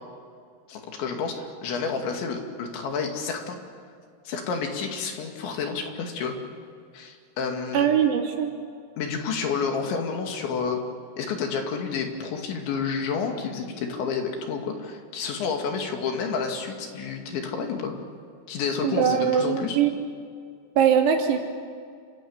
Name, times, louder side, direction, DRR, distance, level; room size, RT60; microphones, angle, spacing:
voice 1, 0.7-3.6 4.3-6.3 6.9-7.9 9.0-10.8 11.2-17.9 18.5-19.8, left 5 dB, 65° left, 3 dB, 4.4 m, -30 dB
voice 2, 7.7-8.5 18.8-19.9 20.8-21.4, right 8 dB, 85° right, 2 dB, 5.4 m, -21 dB
28.5 x 26.5 x 7.3 m, 2.2 s
omnidirectional pair, 6.0 m